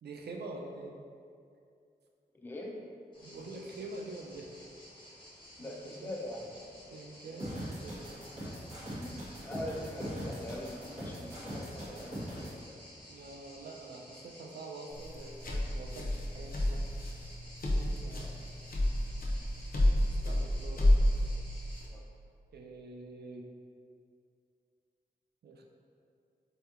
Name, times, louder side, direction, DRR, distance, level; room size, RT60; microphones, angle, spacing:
voice 1, 0.0-1.1 3.2-4.5 5.6-6.1 6.9-9.4 13.1-16.8 17.7-18.3 20.1-21.0 22.5-23.5 25.4-25.6, right 2 dB, 75° right, 2 dB, 0.4 m, -46 dB
voice 2, 2.3-2.8 5.6-6.6 8.9-12.6 18.2-18.4 20.7-21.3 21.9-22.0, left 1 dB, 10° left, -1 dB, 0.3 m, -43 dB
sound 1, 3.1-21.8, equal, 30° left, 1.4 m, -54 dB
sound 2, 7.4-12.5, equal, 40° right, 1.0 m, -41 dB
sound 3, 14.9-21.9, left 1 dB, 60° left, 0.6 m, -30 dB
4.2 x 2.7 x 2.4 m, 2.4 s
wide cardioid pair, 80°, 17 cm